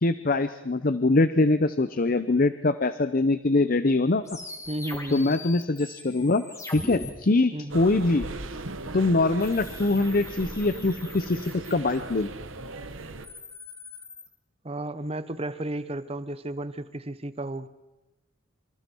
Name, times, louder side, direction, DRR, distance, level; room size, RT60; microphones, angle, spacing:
voice 1, 0.0-4.2 5.1-8.3 8.9-12.3, left 2 dB, 45° left, 12 dB, 0.7 m, -23 dB
sound 1, 4.3-7.1 9.4-12.2 13.0-14.3, left 2 dB, 15° left, 2.1 m, -41 dB
voice 2, 4.7-5.3 7.5-7.8 14.6-17.7, right 1 dB, 30° right, 13 dB, 1.0 m, -33 dB
sound 2, 7.7-13.3, right 2 dB, 85° right, 1.5 m, -38 dB
27.0 x 25.5 x 4.6 m, 1.0 s
head